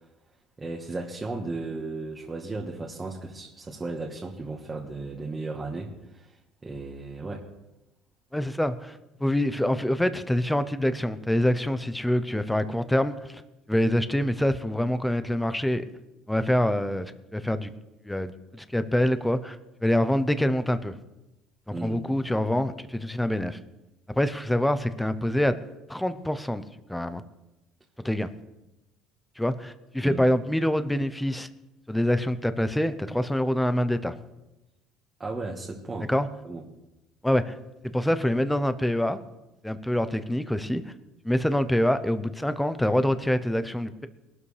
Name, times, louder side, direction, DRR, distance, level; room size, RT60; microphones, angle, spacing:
voice 1, 0.6-6.4 6.6-7.5 21.7-22.0 30.0-30.2 35.2-36.1 36.4-36.6, right 3 dB, 15° right, -1 dB, 1.4 m, -35 dB
voice 2, 8.3-13.4 13.7-15.9 16.3-17.1 17.3-17.7 18.0-19.6 19.8-20.9 21.7-23.6 24.2-25.5 25.9-26.6 26.9-27.2 28.0-28.3 29.4-31.5 31.9-34.1 36.1-36.3 37.2-37.6 37.8-39.2 39.6-40.8 41.2-44.1, left 1 dB, 5° left, 11 dB, 0.6 m, -25 dB
21.5 x 12.5 x 3.3 m, 0.97 s
cardioid pair, 155°, 0 cm